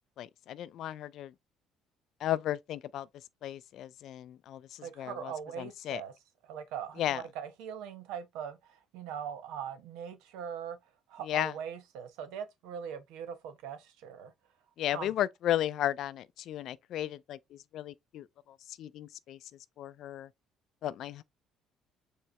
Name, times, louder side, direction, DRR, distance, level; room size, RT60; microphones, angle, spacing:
voice 1, 0.2-1.3 2.2-3.1 3.4-6.0 7.0-7.2 11.2-11.5 14.8-19.5 19.8-20.3 20.8-21.2, left 12 dB, 65° left, 0.4 m, -35 dB
voice 2, 4.8-6.1 6.5-10.8 11.1-14.3 14.9-15.1, right 8 dB, 85° right, 0.9 m, -41 dB
4.7 x 3.2 x 3.1 m
cardioid pair, 100°, 0 cm